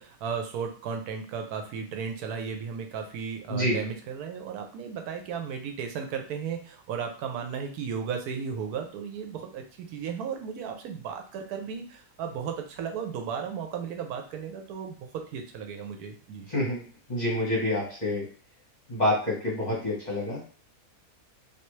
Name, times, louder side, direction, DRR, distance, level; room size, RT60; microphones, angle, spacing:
voice 1, 0.0-16.5, right 6 dB, 85° right, 4 dB, 1.1 m, -35 dB
voice 2, 16.5-16.8 17.1-18.2 18.9-20.4, left 1 dB, 30° left, -6 dB, 1.1 m, -27 dB
3.3 x 2.6 x 3.1 m, 0.41 s
omnidirectional pair, 1.6 m